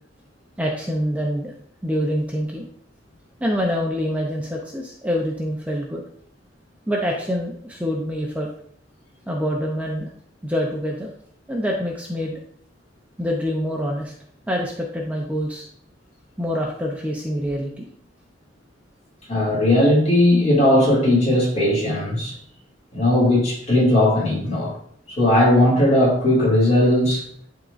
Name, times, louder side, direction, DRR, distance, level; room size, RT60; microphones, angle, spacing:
voice 1, 0.6-1.5 1.8-2.7 3.4-6.0 6.9-8.5 9.3-10.1 10.4-11.1 11.5-12.4 13.2-14.1 14.5-15.7 16.4-17.9, equal, 10° right, -1 dB, 0.6 m, -25 dB
voice 2, 19.3-22.4 22.9-24.7 25.1-27.2, left 1 dB, 35° left, -5 dB, 2.5 m, -18 dB
10.5 x 3.7 x 2.5 m, 0.63 s
head